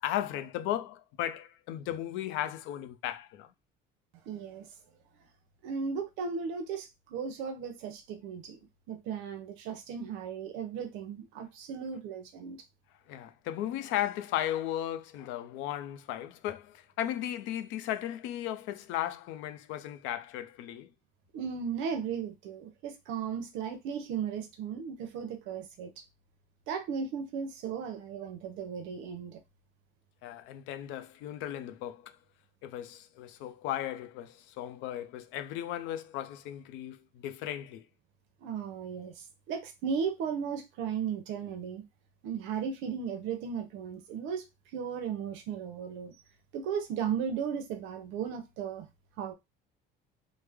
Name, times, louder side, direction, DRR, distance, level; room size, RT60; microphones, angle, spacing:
voice 1, 0.0-3.5 13.1-20.9 30.2-32.2 32.6-37.9, left 12 dB, 80° left, 0.5 m, -36 dB
voice 2, 4.3-4.7 5.6-8.6 8.9-12.6 21.3-26.0 26.7-29.4 38.4-41.8 42.2-44.5 44.7-46.2 46.5-48.9 49.2-49.3, right 7 dB, 75° right, 0.6 m, -36 dB
3.2 x 2.0 x 3.4 m
cardioid pair, 175°, 20 cm